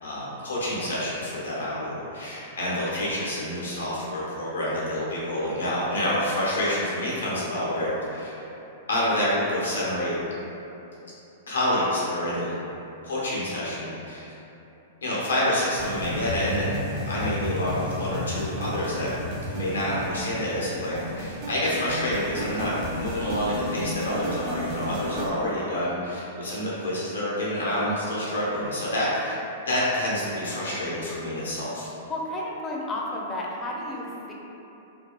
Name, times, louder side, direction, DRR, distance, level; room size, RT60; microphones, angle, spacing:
voice 1, 0.0-8.4 8.9-10.1 11.5-12.5 13.0-14.3 15.0-16.8 17.0-19.1 19.5-22.7 23.0-29.4 29.7-31.9, left 1 dB, 80° left, -7 dB, 0.7 m, -28 dB
sound 1, 15.8-25.3, equal, 45° right, 0.4 m, -33 dB
voice 2, 32.1-34.3, left 1 dB, 20° left, -3 dB, 0.4 m, -32 dB
2.6 x 2.3 x 2.2 m, 2.9 s
hypercardioid pair, 110°, 0 cm